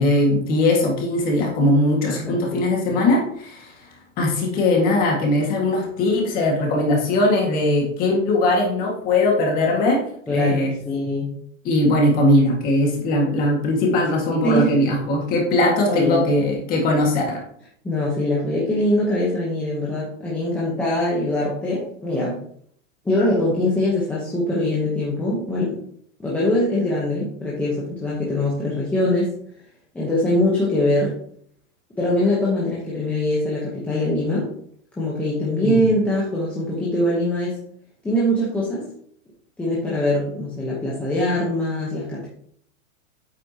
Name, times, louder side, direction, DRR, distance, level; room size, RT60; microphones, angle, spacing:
voice 1, 0.0-3.7 4.2-10.0 10.3-10.8 11.6-17.4 35.6-35.8, left 1 dB, 20° left, 0 dB, 1.8 m, -20 dB
voice 2, 2.1-3.0 10.3-11.4 14.4-14.8 15.6-16.2 17.8-22.4 23.0-25.8 26.2-29.3 29.9-31.2 32.0-34.5 35.0-37.6 38.0-38.9 39.6-42.3, left 1 dB, 5° left, -7 dB, 0.8 m, -23 dB
8.6 x 7.8 x 2.8 m, 0.63 s
supercardioid pair, 170°, 40 cm